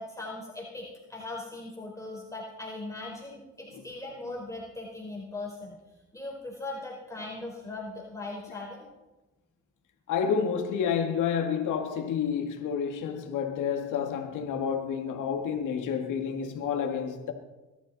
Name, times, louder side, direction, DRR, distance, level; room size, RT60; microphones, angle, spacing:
voice 1, 0.0-5.8 6.1-8.8, left 2 dB, 10° left, 4.4 m, -39 dB
voice 2, 10.1-17.3, left 7 dB, 85° left, 2.1 m, -29 dB
22.5 x 13.0 x 4.2 m
cardioid pair, 90°, 30 cm